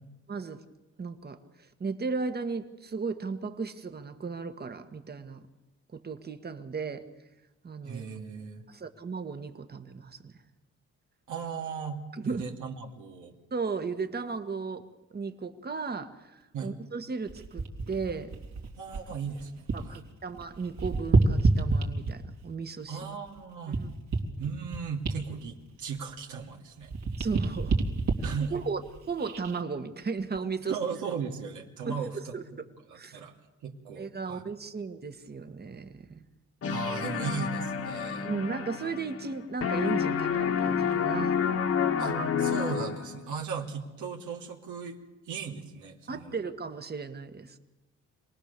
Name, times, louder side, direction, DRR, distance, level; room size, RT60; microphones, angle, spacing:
voice 1, 0.3-0.6 1.0-5.4 5.9-7.0 7.6-8.0 8.7-10.3 12.1-12.5 13.5-18.3 19.7-23.0 23.8-23.9 27.2-27.8 28.5-28.8 29.1-30.8 31.9-32.4 32.9-33.2 34.0-36.3 38.2-41.4 46.1-47.6, right 4 dB, 30° right, 8 dB, 1.8 m, -35 dB
voice 2, 7.8-8.6 11.3-13.3 16.5-16.8 18.8-20.0 22.9-23.8 24.4-26.9 28.2-28.5 30.6-32.6 32.9-33.4 33.6-34.4 36.7-38.3 42.0-45.0 45.2-46.3, right 6 dB, 80° right, 0 dB, 2.8 m, -37 dB
sound 1, 17.3-20.0 20.3-22.4 23.0-26.5 26.8-29.6 30.2-30.4, right 3 dB, 60° right, 3.2 m, -29 dB
sound 2, 36.6-39.4 39.6-43.2, left 7 dB, 50° left, 1.9 m, -29 dB
27.0 x 19.0 x 7.0 m, 1.0 s
cardioid pair, 90°, 30 cm